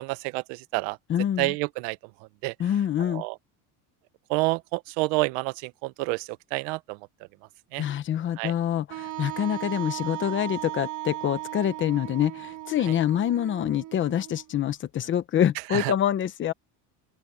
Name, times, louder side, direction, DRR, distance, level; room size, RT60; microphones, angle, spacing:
voice 1, 0.0-1.0 1.4-2.0 2.4-2.5 3.0-3.4 4.3-7.0 7.7-7.9 8.4-8.5 12.9-13.0 15.7-15.9, right 23 dB, 80° right, 1.0 m, -29 dB
voice 2, 1.1-1.5 2.6-3.2 7.8-16.5, left 10 dB, 30° left, 1.0 m, -26 dB
Wind instrument woodwind instrument, 8.9-14.7, right 16 dB, 45° right, 5.5 m, -37 dB
open air
cardioid pair, 180°, 42 cm